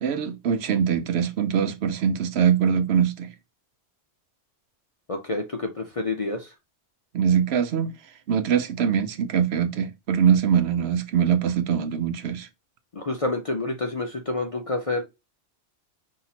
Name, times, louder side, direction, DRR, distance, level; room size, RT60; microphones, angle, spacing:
voice 1, 0.0-3.3 7.1-7.9 8.3-12.5, right 8 dB, 70° right, 0.8 m, -23 dB
voice 2, 5.1-6.5 12.9-15.0, left 2 dB, 40° left, 0.5 m, -28 dB
5.8 x 2.8 x 2.7 m
omnidirectional pair, 1.2 m